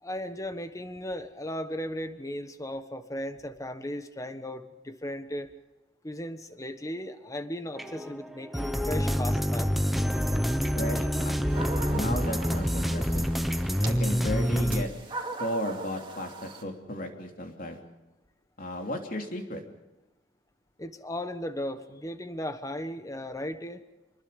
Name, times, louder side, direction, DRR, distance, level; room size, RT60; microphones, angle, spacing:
voice 1, 0.0-5.5 6.0-9.7 20.8-23.8, left 1 dB, 20° left, 9 dB, 1.4 m, -36 dB
sound 1, 7.8-14.8, equal, ahead, 1.1 m, -27 dB
voice 2, 10.7-13.3 13.8-14.9 15.4-17.8 18.6-19.6, left 1 dB, 50° left, 3 dB, 3.4 m, -34 dB
sound 2, 11.5-16.6, right 3 dB, 25° right, 2.5 m, -40 dB
27.0 x 21.5 x 5.4 m, 1.0 s
head